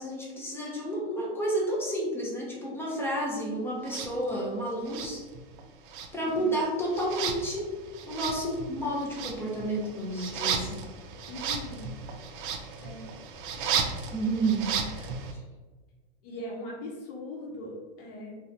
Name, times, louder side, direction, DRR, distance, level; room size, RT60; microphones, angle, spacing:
voice 1, 0.0-5.2 6.1-7.7 8.1-10.8 14.1-14.8 15.3-15.4, right 1 dB, 10° left, -3 dB, 0.5 m, -30 dB
sound 1, 3.8-4.1 4.8-5.6 5.9-15.3, right 6 dB, 60° right, 0.5 m, -35 dB
voice 2, 6.2-6.5 11.3-11.9 12.8-13.1 15.0-15.1 16.2-18.4, left 1 dB, 65° left, -3 dB, 0.8 m, -40 dB
2.8 x 2.2 x 2.5 m, 1.3 s
hypercardioid pair, 130°, 30 cm